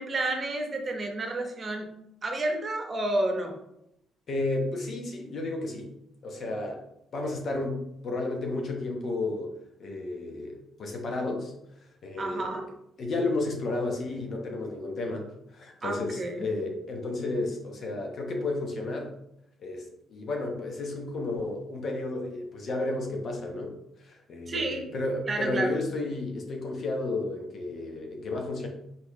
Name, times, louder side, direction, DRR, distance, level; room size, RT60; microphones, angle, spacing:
voice 1, 0.0-1.9 2.2-3.5 12.2-12.7 15.8-16.5 24.5-24.8 25.2-25.8, right 2 dB, 40° right, 3 dB, 1.0 m, -30 dB
voice 2, 4.3-5.9 6.2-6.8 7.1-11.5 11.8-12.5 13.0-19.1 19.6-28.7, left 2 dB, 55° left, 2 dB, 1.1 m, -32 dB
4.3 x 3.9 x 3.2 m, 0.80 s
cardioid pair, 90°, 0 cm